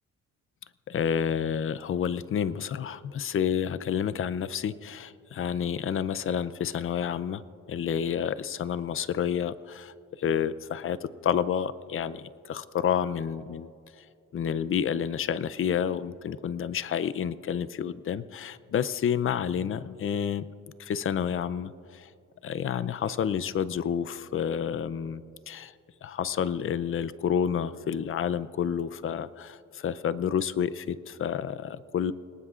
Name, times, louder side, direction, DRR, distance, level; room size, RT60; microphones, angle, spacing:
voice 1, 0.9-7.4 7.7-13.7 14.3-20.4 20.8-22.1 22.4-25.7 26.0-32.1, left 8 dB, 45° left, 16 dB, 0.5 m, -29 dB
30.0 x 18.5 x 2.5 m, 2.6 s
cardioid pair, 130°, 30 cm